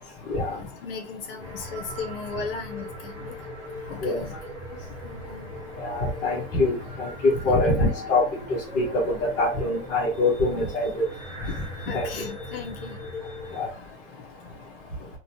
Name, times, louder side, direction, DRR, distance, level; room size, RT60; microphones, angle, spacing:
voice 1, 0.5-3.4 3.9-5.5 7.4-7.9 8.7-8.8 10.6-10.7 11.7-13.0 13.5-13.8, left 5 dB, 50° left, 4 dB, 0.7 m, -37 dB
sound 1, 1.4-13.7, equal, 5° right, 0.3 m, -39 dB
voice 2, 5.8-8.2 8.5-11.0 11.9-12.1 13.5-13.7, left 2 dB, 20° left, -7 dB, 0.9 m, -24 dB
2.8 x 2.2 x 2.7 m, 0.33 s
hypercardioid pair, 145°, 37 cm